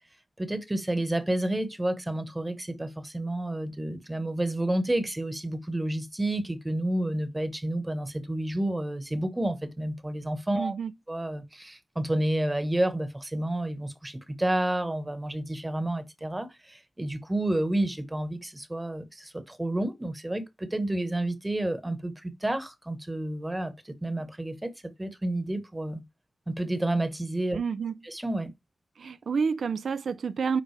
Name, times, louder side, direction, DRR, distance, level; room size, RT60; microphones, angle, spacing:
voice 1, 0.4-10.7 11.1-26.0 26.5-27.6 28.0-28.5, right 1 dB, 15° right, 1.1 m, -30 dB
voice 2, 10.6-10.9 27.5-27.9 29.0-30.6, right 5 dB, 85° right, 0.5 m, -29 dB
9.7 x 3.7 x 3.2 m
wide cardioid pair, 105°, 0 cm